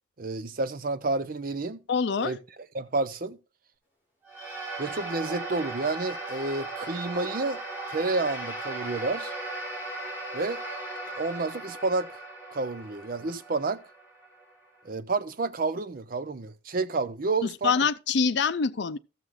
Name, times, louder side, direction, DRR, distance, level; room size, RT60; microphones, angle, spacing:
voice 1, 0.2-1.8 2.2-2.4 2.7-3.4 4.8-7.6 7.9-9.3 10.3-10.6 11.2-12.2 12.5-13.8 14.8-17.7, right 3 dB, 45° right, 0.6 m, -30 dB
voice 2, 1.9-2.3 17.4-19.0, left 5 dB, 60° left, 0.5 m, -25 dB
sound 1, 4.3-14.8, right 2 dB, 10° right, 3.3 m, -37 dB
14.0 x 6.4 x 3.7 m
head